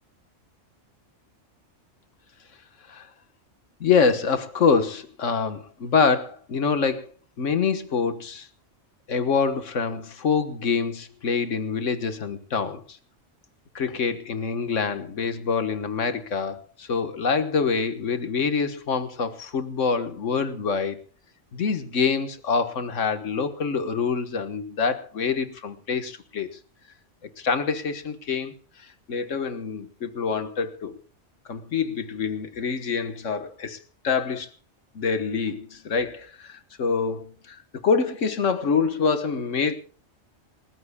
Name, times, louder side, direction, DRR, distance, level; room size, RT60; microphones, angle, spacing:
voice 1, 3.8-7.1 7.4-8.5 9.1-13.0 13.7-21.0 21.5-26.5 27.4-28.5 29.1-31.0 31.5-33.8 34.0-34.5 34.9-39.8, left 5 dB, 80° left, 10 dB, 1.7 m, -25 dB
27.5 x 14.0 x 2.3 m, 0.36 s
omnidirectional pair, 1.3 m